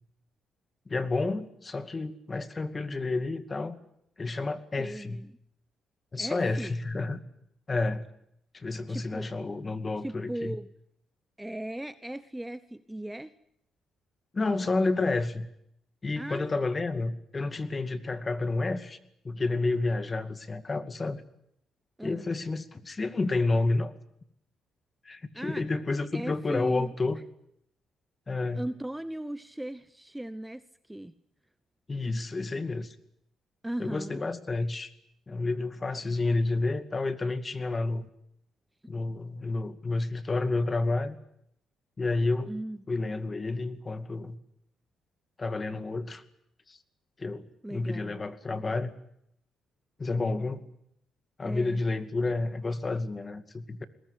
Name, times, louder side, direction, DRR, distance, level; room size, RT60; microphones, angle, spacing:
voice 1, 0.9-3.8 4.2-5.2 6.1-7.2 7.7-8.1 8.5-10.6 14.3-15.5 16.0-19.0 19.2-21.2 22.0-23.9 25.0-27.2 28.3-28.6 31.9-33.0 33.8-34.9 35.3-38.1 38.9-41.2 42.0-42.5 42.9-44.4 45.4-46.2 46.7-46.8 47.2-48.9 50.0-50.6 51.4-53.8, left 3 dB, 30° left, 10 dB, 2.3 m, -30 dB
voice 2, 4.8-5.4 6.2-6.7 8.9-9.3 10.0-10.7 11.4-13.3 16.2-16.6 22.0-22.3 25.3-25.6 26.1-27.2 28.5-31.1 33.6-34.2 42.5-42.8 47.6-48.2 51.4-51.8, right 1 dB, 5° right, 14 dB, 0.9 m, -38 dB
22.0 x 19.5 x 10.0 m, 0.73 s
cardioid pair, 90°, 0 cm